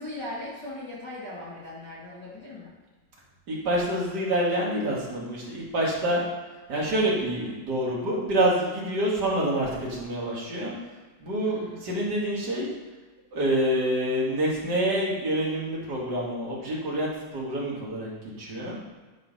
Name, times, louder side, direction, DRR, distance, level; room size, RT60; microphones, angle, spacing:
voice 1, 0.0-2.7 11.4-11.9, left 1 dB, 35° left, -8 dB, 1.9 m, -39 dB
voice 2, 3.5-6.2 6.7-10.7 11.2-12.7 13.3-18.1 18.4-18.8, right 1 dB, 35° right, -5 dB, 1.9 m, -27 dB
12.0 x 5.1 x 5.5 m, 1.3 s
omnidirectional pair, 4.7 m